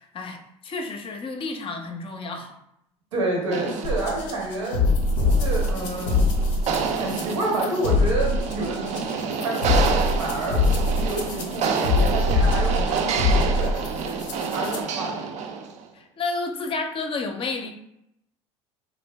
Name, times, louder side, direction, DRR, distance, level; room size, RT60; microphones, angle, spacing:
voice 1, 0.0-2.6 15.9-17.7, left 3 dB, 35° left, 5 dB, 0.5 m, -31 dB
voice 2, 3.1-4.8 5.2-6.2 6.9-10.6 11.0-15.3, right 2 dB, 85° right, -1 dB, 0.8 m, -29 dB
sound 1, 3.5-15.8, right 6 dB, 50° right, 0.4 m, -29 dB
sound 2, 3.8-14.8, left 3 dB, 80° left, 0.5 m, -23 dB
3.1 x 2.4 x 2.2 m, 0.79 s
hypercardioid pair, 70°, 15 cm